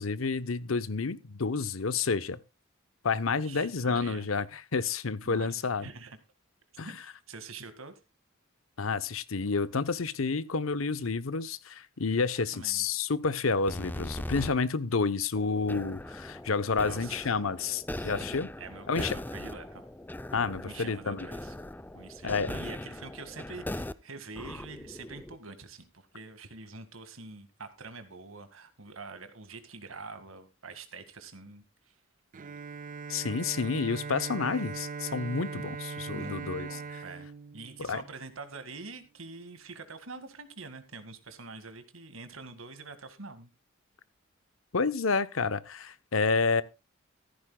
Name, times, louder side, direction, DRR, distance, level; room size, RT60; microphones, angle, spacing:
voice 1, 0.0-2.4 3.0-5.9 6.8-6.9 8.8-18.5 18.9-19.2 20.3-21.3 22.2-22.5 33.1-36.7 37.8-38.0 44.7-46.6, left 4 dB, 85° left, 0.9 m, -29 dB
voice 2, 3.3-4.3 5.2-6.2 6.8-7.9 12.4-12.8 16.8-17.6 17.9-19.9 20.7-21.5 21.9-32.0 36.1-37.3 37.5-43.5, right 3 dB, 85° right, 2.0 m, -45 dB
sound 1, 13.7-14.5 15.3-23.9 24.3-25.3, left 1 dB, 10° left, 0.5 m, -40 dB
Bowed string instrument, 32.3-38.3, right 4 dB, 40° right, 0.5 m, -40 dB
15.0 x 14.0 x 2.3 m
head